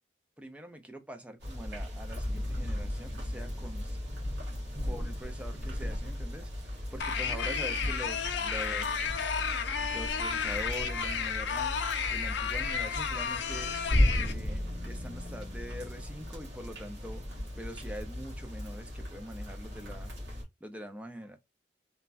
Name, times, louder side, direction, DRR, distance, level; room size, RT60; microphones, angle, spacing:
voice 1, 0.4-4.0 4.8-9.4 9.9-11.8 12.1-13.8 14.0-20.1 20.6-21.4, equal, 5° right, 0.4 m, -44 dB
sound 1, 1.4-20.4, left 1 dB, 65° right, 1.4 m, -35 dB
sound 2, 7.0-14.3, left 6 dB, 65° left, 0.5 m, -32 dB
3.3 x 2.1 x 2.5 m
head